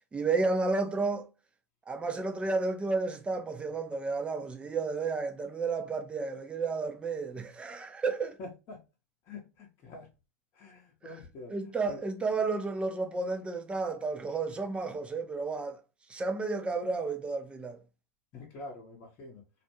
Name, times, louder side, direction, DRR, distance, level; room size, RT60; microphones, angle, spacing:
voice 1, 0.1-1.3 1.9-8.4 11.5-15.8 16.1-17.8, right 3 dB, 15° right, 0.4 m, -32 dB
voice 2, 8.4-8.8 9.2-10.1 10.5-11.5 11.9-12.0 18.3-19.4, left 2 dB, 35° left, 0.7 m, -46 dB
2.4 x 2.1 x 2.8 m
hypercardioid pair, 105°, 8 cm